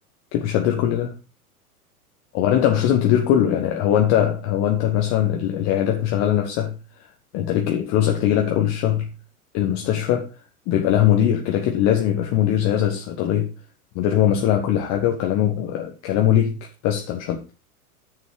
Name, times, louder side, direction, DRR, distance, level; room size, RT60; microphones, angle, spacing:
voice 1, 0.3-1.2 2.3-9.1 9.5-10.3 10.7-13.5 13.9-17.5, left 10 dB, 35° left, 1.4 m, -21 dB
9.5 x 7.4 x 4.8 m
figure-of-eight pair, 100°, 45 cm